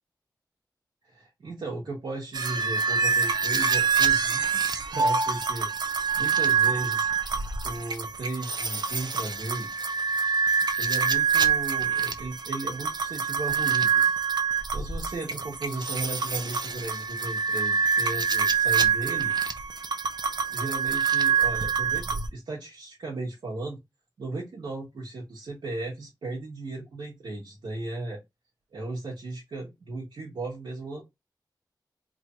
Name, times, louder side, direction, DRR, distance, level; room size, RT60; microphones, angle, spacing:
voice 1, 1.0-5.7 6.1-7.1 7.6-9.7 10.8-14.2 14.7-19.3 20.5-23.8 24.2-28.2 28.7-31.0, right 2 dB, 85° right, -5 dB, 1.3 m, -36 dB
sound 1, 2.3-22.3, right 6 dB, 70° right, 0.6 m, -26 dB
3.3 x 2.4 x 4.2 m, 0.20 s
wide cardioid pair, 80°, 8 cm